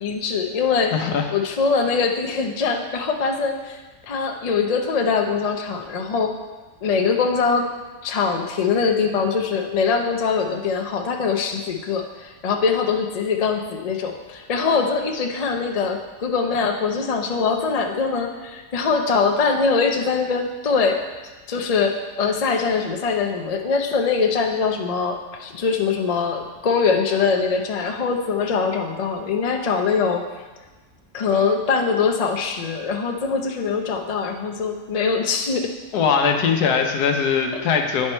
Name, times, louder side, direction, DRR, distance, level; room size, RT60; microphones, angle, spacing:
voice 1, 0.0-0.9 1.3-3.8 4.1-6.3 6.8-7.7 8.0-21.0 21.5-30.2 31.1-35.7 37.5-37.6, left 5 dB, 55° left, 3 dB, 0.4 m, -22 dB
voice 2, 0.9-1.3 35.9-38.1, left 6 dB, 85° left, 4 dB, 1.3 m, -21 dB
9.5 x 4.7 x 4.4 m, 1.2 s
omnidirectional pair, 1.7 m